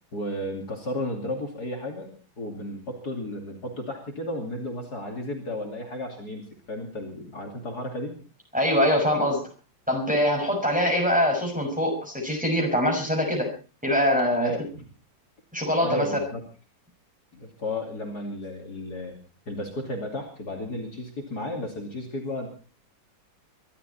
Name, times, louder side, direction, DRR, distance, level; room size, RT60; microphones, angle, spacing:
voice 1, 0.1-8.1 14.3-14.8 15.8-16.4 17.3-19.2 19.5-22.5, left 1 dB, 50° left, 1 dB, 3.3 m, -33 dB
voice 2, 8.5-9.4 9.9-13.5 13.8-14.5 15.5-16.1, equal, 5° right, 1 dB, 6.1 m, -23 dB
23.5 x 13.0 x 4.2 m, 0.37 s
omnidirectional pair, 2.2 m